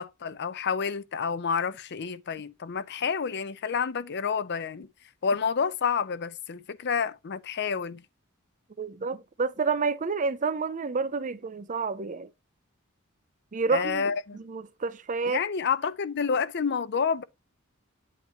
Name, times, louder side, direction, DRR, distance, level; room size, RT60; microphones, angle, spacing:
voice 1, 0.0-4.9 5.2-8.0 13.7-14.4 15.3-17.2, left 6 dB, 50° left, 0.5 m, -29 dB
voice 2, 8.8-12.3 13.5-15.4, right 4 dB, 35° right, 0.5 m, -29 dB
8.5 x 3.0 x 4.3 m
head